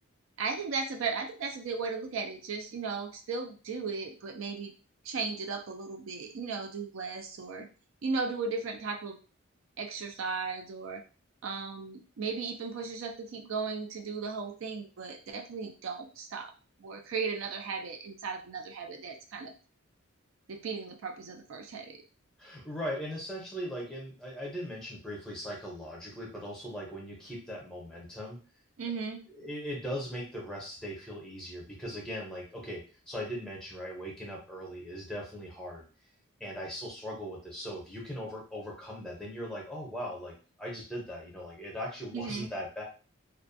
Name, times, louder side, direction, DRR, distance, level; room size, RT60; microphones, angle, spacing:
voice 1, 0.4-4.7 5.0-7.7 8.0-9.2 9.8-11.0 11.4-16.5 16.8-19.5 20.5-22.0 28.8-29.2 42.1-42.5, right 4 dB, 70° right, 4 dB, 0.4 m, -36 dB
voice 2, 22.4-28.4 29.3-35.8 36.4-42.8, equal, 5° left, -2 dB, 0.7 m, -39 dB
2.4 x 2.2 x 2.6 m, 0.36 s
head